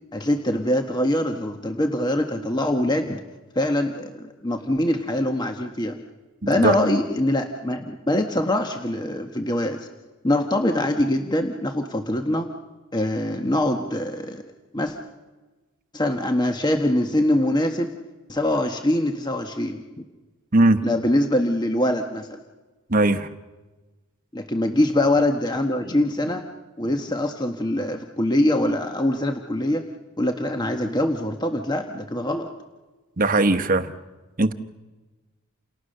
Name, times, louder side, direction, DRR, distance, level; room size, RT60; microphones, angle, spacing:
voice 1, 0.1-3.2 3.5-6.0 6.5-9.9 10.2-12.5 12.9-14.4 14.7-15.0 15.9-17.9 18.3-19.8 20.8-22.4 24.3-26.4 26.8-29.8 30.2-32.5, left 1 dB, 20° left, 5 dB, 1.3 m, -23 dB
voice 2, 6.4-6.7 20.5-20.8 22.9-23.3 33.2-33.9 34.4-34.5, right 2 dB, 40° right, 10 dB, 1.1 m, -19 dB
29.0 x 28.5 x 6.6 m, 1.2 s
head